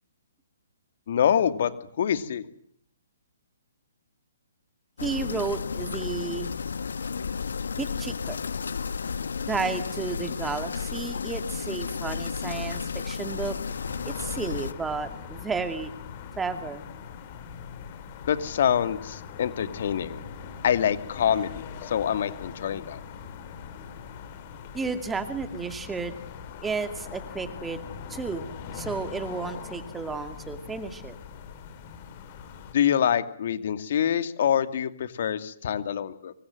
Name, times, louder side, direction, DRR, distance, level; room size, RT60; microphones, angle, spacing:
voice 1, 1.1-1.7 2.0-2.4 18.3-20.2 20.6-23.0 32.7-36.3, left 9 dB, 55° left, 11 dB, 2.4 m, -25 dB
sound 1, 5.0-14.7, left 5 dB, 75° left, 1.3 m, -32 dB
voice 2, 5.0-6.5 7.8-8.4 9.5-13.6 14.0-15.9 16.4-16.8 24.7-26.2 26.6-28.5 28.7-31.2, right 4 dB, 10° right, 9 dB, 2.4 m, -32 dB
sound 2, 13.6-32.7, left 7 dB, 40° left, 5.1 m, -41 dB
25.5 x 24.5 x 7.8 m, 0.64 s
hypercardioid pair, 135°, 0 cm